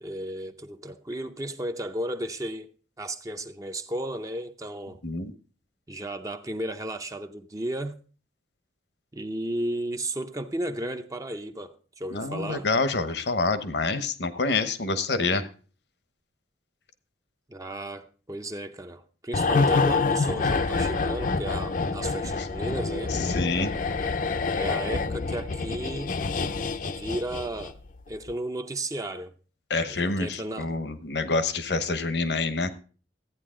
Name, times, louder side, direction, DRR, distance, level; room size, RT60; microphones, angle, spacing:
voice 1, 0.0-2.7 3.0-5.0 5.9-8.0 9.1-12.7 17.5-23.2 24.5-26.2 26.8-27.8 28.1-29.3 29.8-30.7, right 1 dB, 20° right, 0.6 m, -34 dB
voice 2, 12.1-15.5 23.1-23.7 29.7-32.7, left 3 dB, 70° left, 1.0 m, -27 dB
sound 1, 19.3-27.9 28.1-28.3, left 4 dB, 45° left, 0.6 m, -27 dB
13.5 x 9.3 x 3.7 m
head